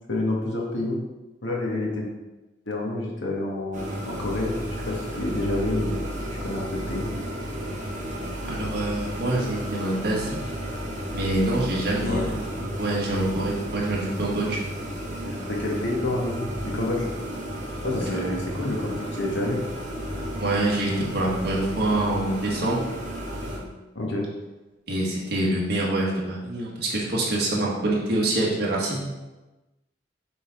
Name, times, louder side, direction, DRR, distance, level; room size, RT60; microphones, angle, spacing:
voice 1, 0.1-1.0 1.4-2.1 2.6-6.0 6.4-7.1 12.1-12.3 15.2-17.1 17.8-19.6 23.9-24.3, left 2 dB, 75° left, -2 dB, 1.6 m, -28 dB
sound 1, 3.7-23.6, equal, 40° right, 1.7 m, -33 dB
voice 2, 8.5-10.4 11.1-12.4 12.8-14.6 17.8-18.2 20.4-22.8 24.9-29.0, right 1 dB, 55° right, -4 dB, 1.9 m, -25 dB
7.4 x 4.0 x 5.0 m, 1.1 s
head